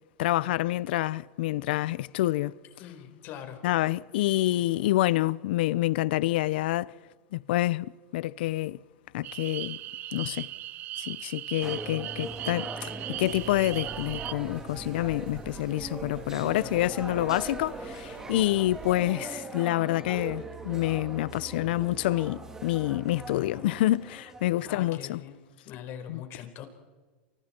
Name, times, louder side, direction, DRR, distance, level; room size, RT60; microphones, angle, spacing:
voice 1, 0.2-2.5 3.6-6.9 7.3-8.8 9.1-9.8 10.1-10.5 11.0-25.2 26.1-26.2, left 16 dB, 70° left, 0.8 m, -27 dB
voice 2, 2.8-3.6 16.5-16.8 24.6-25.4 25.6-26.7, left 9 dB, 40° left, 4.6 m, -42 dB
sound 1, 9.2-14.3, right 13 dB, 35° right, 0.7 m, -38 dB
sound 2, 11.6-25.0, right 3 dB, 10° right, 2.7 m, -41 dB
sound 3, 13.1-18.9, right 6 dB, 60° right, 5.8 m, -47 dB
29.0 x 28.5 x 4.5 m
supercardioid pair, 150°, 6 cm